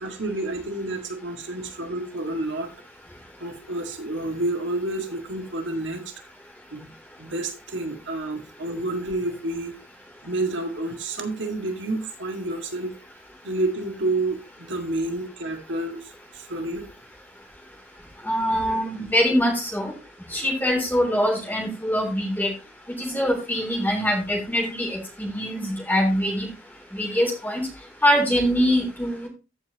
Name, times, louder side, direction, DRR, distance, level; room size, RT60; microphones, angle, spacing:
voice 1, 0.0-2.7 3.4-6.1 6.7-6.9 7.2-9.7 10.2-12.9 13.4-16.9, right 2 dB, 65° right, 4 dB, 1.9 m, -29 dB
voice 2, 18.2-19.9 20.3-22.5 23.0-26.5 26.9-27.6 28.0-29.3, equal, 10° left, 1 dB, 3.1 m, -23 dB
15.0 x 5.6 x 2.9 m, 0.27 s
head